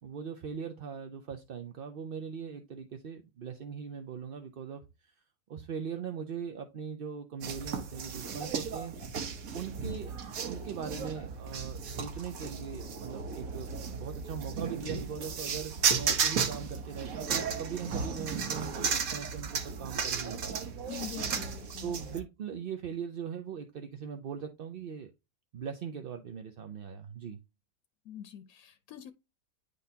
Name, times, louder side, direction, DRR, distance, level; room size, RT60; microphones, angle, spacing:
voice 1, 0.0-5.1 5.5-9.0 9.5-20.7 21.8-25.1 25.5-27.4, right 7 dB, 50° right, 0.7 m, -40 dB
sound 1, 7.4-22.2, right 6 dB, 75° right, 1.5 m, -34 dB
voice 2, 20.9-22.0 28.0-29.1, left 11 dB, 85° left, 1.1 m, -44 dB
10.0 x 3.9 x 2.8 m
omnidirectional pair, 1.5 m